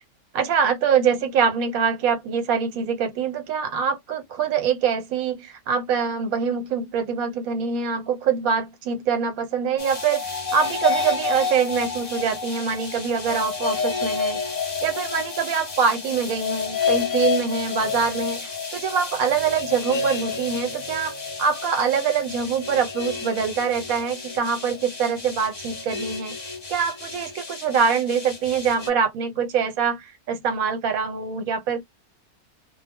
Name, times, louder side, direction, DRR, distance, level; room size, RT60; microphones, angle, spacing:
voice 1, 0.3-14.4 14.8-21.1 21.4-26.3 26.7-31.8, right 6 dB, 80° right, 1.2 m, -24 dB
sound 1, 9.8-28.9, left 5 dB, 35° left, 0.8 m, -30 dB
2.3 x 2.1 x 3.4 m
omnidirectional pair, 1.5 m